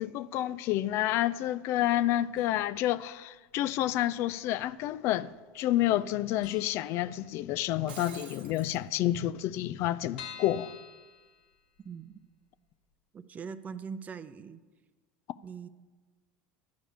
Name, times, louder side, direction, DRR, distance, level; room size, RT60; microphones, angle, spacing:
voice 1, 0.0-5.3 5.5-10.7, left 13 dB, 55° left, 0.3 m, -29 dB
sound 1, 2.4-2.9 3.1-3.2 4.2-4.9 5.2-5.3 5.6-5.7 6.1-6.2 6.4-7.7 8.1-8.2 8.5-8.6 8.8-8.9 9.4-12.0 12.4-12.5 12.9-13.0, left 8 dB, 80° left, 1.2 m, -49 dB
Shatter, 7.7-8.8, right 7 dB, 85° right, 1.0 m, -47 dB
voice 2, 11.8-12.2 13.1-14.6 15.4-15.7, right 6 dB, 30° right, 0.5 m, -41 dB
10.5 x 4.9 x 7.9 m
hypercardioid pair, 95°, 5 cm